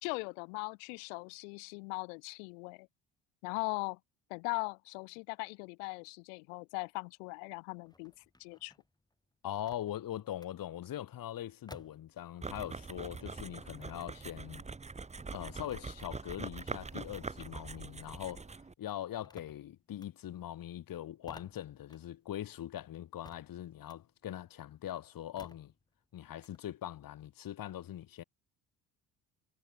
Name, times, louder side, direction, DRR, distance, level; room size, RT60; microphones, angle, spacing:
voice 1, 0.0-2.9 3.4-4.0 4.3-8.1 8.4-8.7, left 39 dB, 85° left, 0.7 m, -39 dB
sound 1, 7.7-12.9 13.2-18.0 18.3-26.6, left 2 dB, 10° left, 6.3 m, -60 dB
voice 2, 9.4-14.6 15.3-18.4 18.8-25.7 26.1-28.2, left 12 dB, 60° left, 4.3 m, -42 dB
sound 2, 12.4-18.7, right 4 dB, 15° right, 1.2 m, -43 dB
supercardioid pair, 70°, 39 cm